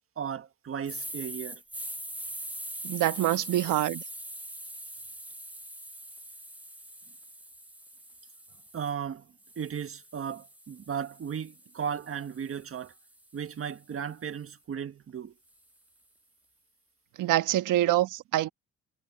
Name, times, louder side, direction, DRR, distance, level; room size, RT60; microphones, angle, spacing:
voice 1, 0.2-1.6 8.7-9.3 9.6-12.9 13.3-15.3, right 7 dB, 45° right, 1.6 m, -35 dB
sound 1, 0.9-8.9 9.4-13.6, right 1 dB, 5° right, 1.5 m, -43 dB
voice 2, 2.8-4.0 17.2-18.5, right 14 dB, 90° right, 1.3 m, -25 dB
cardioid pair, 90°, 30 cm